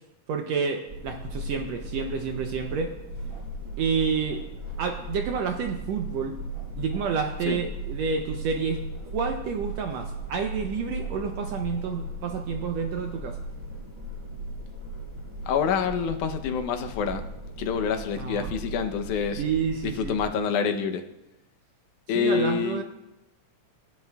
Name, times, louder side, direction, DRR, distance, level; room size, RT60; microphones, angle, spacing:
voice 1, 0.3-2.9 3.8-4.4 4.8-6.4 6.8-13.4 18.2-18.5 19.4-20.2 22.1-22.8, right 6 dB, 75° right, 4 dB, 1.6 m, -29 dB
sound 1, 0.9-20.3, right 1 dB, 10° right, 1.4 m, -37 dB
voice 2, 15.5-17.2 17.6-19.4 19.8-21.0 22.1-22.8, left 6 dB, 80° left, 6 dB, 2.2 m, -27 dB
16.5 x 10.5 x 2.3 m, 0.92 s
omnidirectional pair, 3.6 m